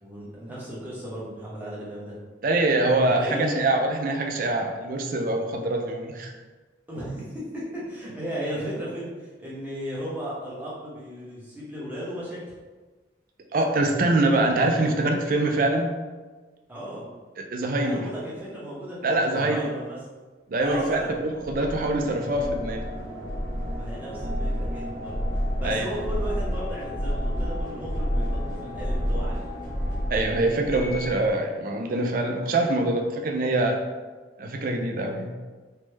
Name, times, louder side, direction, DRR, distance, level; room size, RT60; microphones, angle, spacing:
voice 1, 0.0-2.2 3.2-3.7 6.9-12.4 16.7-17.1 17.8-20.0 20.5-21.2 23.7-25.2 25.5-29.5, equal, 10° right, -8 dB, 0.8 m, -35 dB
voice 2, 2.4-6.3 13.5-15.9 17.4-18.1 19.0-19.6 20.5-22.8 25.6-25.9 30.1-33.8 34.4-35.3, right 2 dB, 50° right, 3 dB, 0.4 m, -24 dB
sound 1, 20.8-31.3, equal, 50° left, 0.8 m, -30 dB
3.2 x 2.0 x 3.2 m, 1.3 s
head